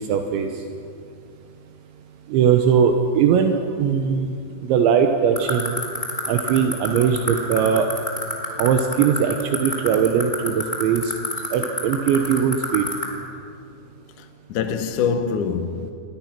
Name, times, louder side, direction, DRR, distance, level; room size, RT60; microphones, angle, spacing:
voice 1, 0.1-0.5 2.3-4.4 4.6-5.8 6.3-7.9 8.6-11.1 11.5-12.8, right 7 dB, 80° right, 3.3 m, -20 dB
sound 1, 5.3-13.0, left 2 dB, 10° left, 2.8 m, -24 dB
voice 2, 14.2-15.9, left 6 dB, 85° left, 1.7 m, -25 dB
29.0 x 22.5 x 6.0 m
omnidirectional pair, 5.4 m